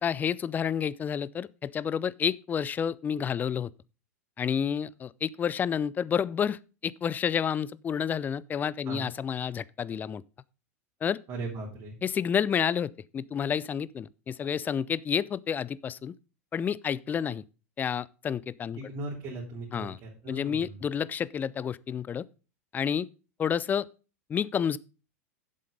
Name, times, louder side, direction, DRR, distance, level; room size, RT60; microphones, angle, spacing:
voice 1, 0.0-3.7 4.4-10.2 11.0-11.2 12.0-16.1 16.5-17.4 17.8-18.8 19.7-20.0 20.3-22.3 22.7-23.1 23.4-23.9 24.3-24.8, left 8 dB, 20° left, 0.4 m, -30 dB
voice 2, 11.3-11.9 18.7-20.8, right 2 dB, 40° right, 3.4 m, -38 dB
7.7 x 7.6 x 5.0 m
hypercardioid pair, 95°, 8 cm